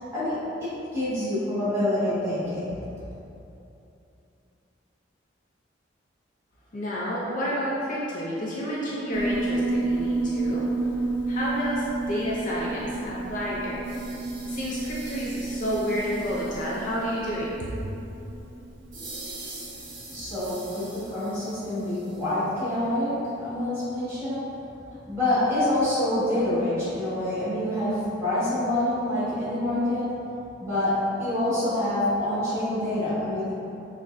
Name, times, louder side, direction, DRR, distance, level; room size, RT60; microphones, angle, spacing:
voice 1, 0.0-2.9 20.1-24.7 25.1-30.3 30.6-33.5, left 1 dB, 15° right, -12 dB, 1.4 m, -27 dB
voice 2, 6.7-10.7 11.3-13.8 14.4-17.7, equal, 40° left, -6 dB, 0.4 m, -30 dB
Piano, 9.1-19.8, right 2 dB, 70° right, 0.5 m, -31 dB
sound 1, 13.8-17.2 18.9-22.4, right 2 dB, 40° right, 0.8 m, -44 dB
6.0 x 2.1 x 2.5 m, 2.9 s
head